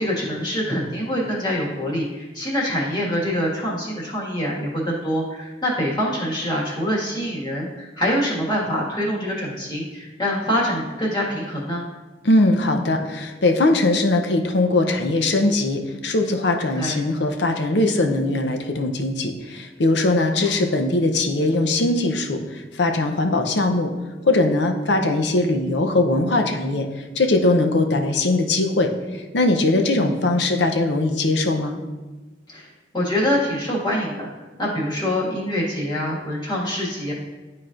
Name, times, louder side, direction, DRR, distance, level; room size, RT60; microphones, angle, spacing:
voice 1, 0.0-11.8 16.8-17.0 20.1-20.2 32.5-34.3 34.6-37.1, equal, 25° left, -5 dB, 1.8 m, -25 dB
voice 2, 12.2-22.4 22.8-23.9 24.2-26.9 27.2-28.9 29.3-31.8, left 2 dB, 75° left, 4 dB, 0.7 m, -20 dB
11.5 x 4.2 x 2.5 m, 1.2 s
head